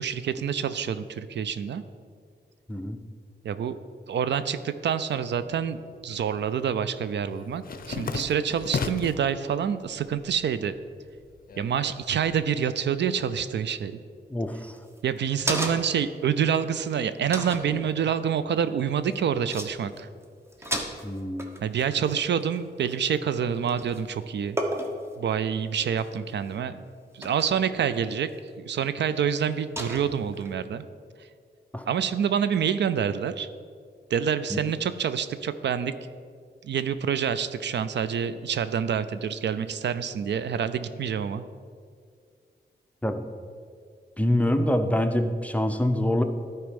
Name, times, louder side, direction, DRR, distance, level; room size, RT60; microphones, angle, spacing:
voice 1, 0.0-1.8 3.4-3.8 4.1-10.7 11.6-14.0 15.0-20.1 21.6-24.6 25.2-26.8 27.1-28.3 28.6-30.8 31.9-33.5 34.1-35.9 36.6-41.4, right 8 dB, 75° right, 12 dB, 0.4 m, -27 dB
sound 1, 5.7-6.2 6.5-9.3 9.7-10.4 10.7-12.4, left 5 dB, 50° left, 0.6 m, -35 dB
voice 2, 14.3-14.8 21.0-21.5 31.7-31.9 34.5-34.6 43.0-43.3 44.2-46.2, left 1 dB, 5° left, 6 dB, 0.6 m, -25 dB
sound 2, 14.8-16.1 16.5-16.6 17.3-17.7 19.1-19.2 19.5-19.7 20.0-20.2 20.5-23.3 23.7-24.1 24.6-25.1 25.9-26.4 27.2-27.7 28.3-28.4 29.8-30.5, equal, 15° right, 1.0 m, -33 dB
11.0 x 4.5 x 5.2 m, 2.1 s
cardioid pair, 85°, 18 cm